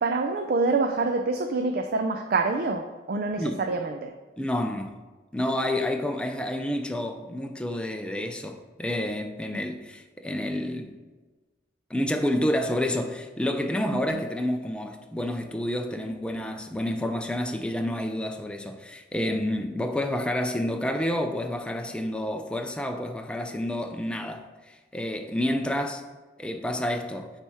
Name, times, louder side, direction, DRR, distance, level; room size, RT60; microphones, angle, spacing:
voice 1, 0.0-4.1, right 3 dB, 55° right, 0.4 m, -26 dB
voice 2, 4.4-5.0 5.3-10.9 11.9-26.0 26.4-27.3, left 1 dB, 5° left, 0.4 m, -29 dB
9.0 x 3.4 x 4.2 m
head